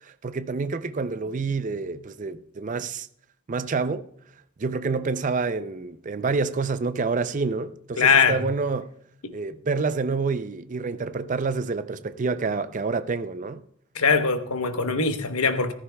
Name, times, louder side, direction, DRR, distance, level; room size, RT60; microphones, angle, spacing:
voice 1, 0.0-3.1 3.5-4.1 4.6-8.9 9.3-13.6, right 4 dB, 35° right, 0.5 m, -28 dB
voice 2, 8.0-8.4 9.2-9.3 13.9-15.7, left 5 dB, 85° left, 1.0 m, -21 dB
14.5 x 14.5 x 2.3 m
head